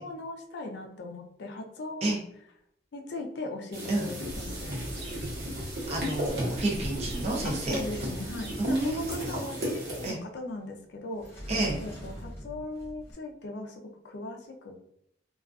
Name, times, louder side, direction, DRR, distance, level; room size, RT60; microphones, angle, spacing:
voice 1, 0.0-2.1 2.9-4.8 7.4-11.3 11.8-14.7, left 2 dB, 65° left, 3 dB, 0.4 m, -39 dB
sound 1, 3.7-10.1, equal, 55° right, 0.9 m, -35 dB
sound 2, 4.3-9.4, equal, 80° right, 1.1 m, -41 dB
voice 2, 5.9-7.8 8.6-9.3 10.0-10.2 11.5-11.8, right 2 dB, 35° right, -1 dB, 0.5 m, -29 dB
Sliding door, 7.4-9.0 11.1-13.1, equal, 15° left, 0.6 m, -43 dB
2.3 x 2.3 x 2.4 m, 0.73 s
head